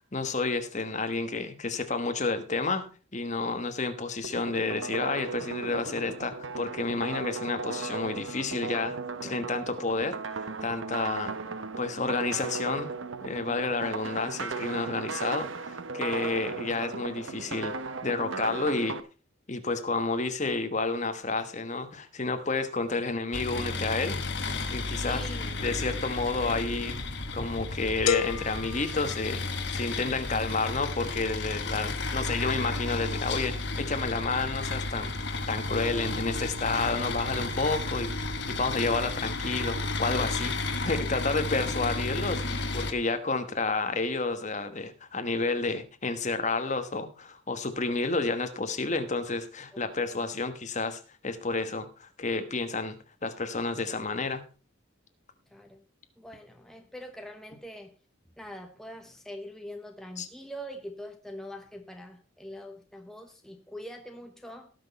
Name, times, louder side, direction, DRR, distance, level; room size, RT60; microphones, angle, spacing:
voice 1, 0.1-2.8 3.1-10.2 10.6-11.3 11.8-12.9 13.2-17.7 18.0-19.0 19.5-24.2 24.7-25.2 25.5-26.9 27.3-38.1 38.6-53.0 53.2-54.4 60.2-60.3, left 3 dB, 35° left, 9 dB, 1.2 m, -30 dB
sound 1, 4.2-19.0, right 4 dB, 70° right, 0.8 m, -36 dB
voice 2, 11.2-11.6 24.9-25.6 26.2-26.4 35.9-36.1 50.1-50.2 55.5-55.8 56.2-57.9 58.4-64.7, equal, ahead, 4 dB, 0.9 m, -44 dB
sound 2, 23.3-42.9, left 2 dB, 55° left, 1.5 m, -33 dB
sound 3, 28.1-29.9, left 8 dB, 85° left, 0.7 m, -32 dB
18.5 x 6.1 x 4.1 m, 0.34 s
head